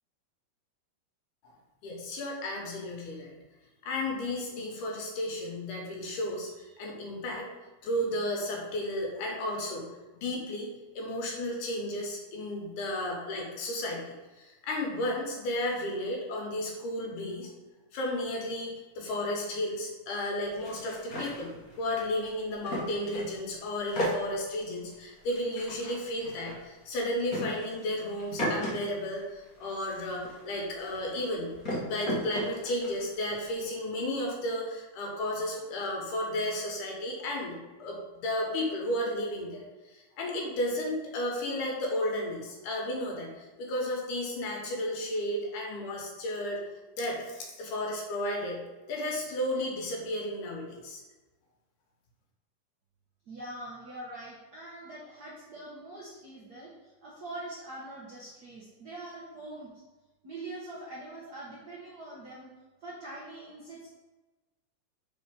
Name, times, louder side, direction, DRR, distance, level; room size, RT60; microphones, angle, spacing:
voice 1, 1.8-3.4 3.8-7.5 7.8-9.9 10.1-10.7 11.0-17.5 17.9-46.6 47.0-48.6 48.9-51.0, left 1 dB, 90° left, -1 dB, 2.8 m, -33 dB
sound 1, 20.4-23.5 23.7-28.8 29.0-33.6, equal, 45° left, 1.2 m, -36 dB
voice 2, 53.3-59.7 60.2-62.5 62.8-63.9, right 2 dB, 85° right, -7 dB, 0.8 m, -43 dB
5.2 x 4.3 x 5.1 m, 1.2 s
omnidirectional pair, 3.5 m